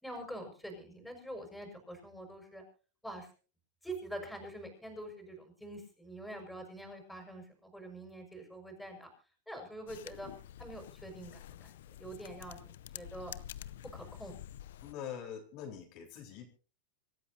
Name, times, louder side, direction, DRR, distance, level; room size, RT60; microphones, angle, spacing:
voice 1, 0.0-2.6 3.0-3.3 3.8-9.1 9.5-10.3 10.6-11.7 12.0-13.3 13.9-14.4, right 1 dB, ahead, 4 dB, 6.1 m, -45 dB
sound 1, 9.9-14.9, left 11 dB, 80° left, 0.7 m, -48 dB
voice 2, 14.8-16.5, left 8 dB, 50° left, 2 dB, 4.1 m, -44 dB
26.0 x 14.0 x 2.7 m, 0.36 s
supercardioid pair, 135°, 0 cm